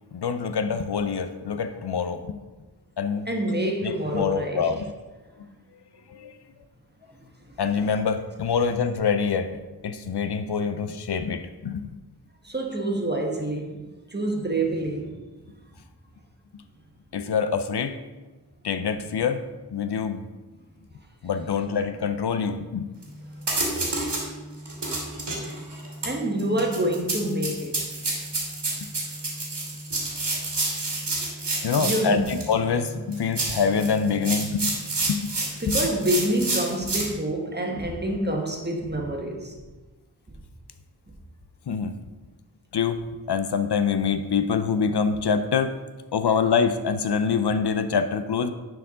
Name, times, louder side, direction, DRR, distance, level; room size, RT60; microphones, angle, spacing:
voice 1, 0.1-2.4 3.0-3.3 3.8-4.9 6.1-6.4 7.6-11.9 17.1-18.0 18.6-19.4 19.7-20.3 21.2-22.9 31.6-35.3 35.7-35.8 41.7-42.0 42.7-43.0 43.3-45.7 46.1-48.5, left 6 dB, 75° left, 10 dB, 0.5 m, -25 dB
voice 2, 3.3-4.7 12.4-13.8 14.1-15.1 26.0-27.8 31.1-31.3 31.7-32.3 35.6-39.6, right 1 dB, 25° right, 1 dB, 1.3 m, -27 dB
sound 1, 23.0-23.1 23.4-24.2 24.7-32.5 33.1-37.1, right 2 dB, 85° right, 2.0 m, -29 dB
10.0 x 4.7 x 3.7 m, 1.2 s
wide cardioid pair, 55°, 41 cm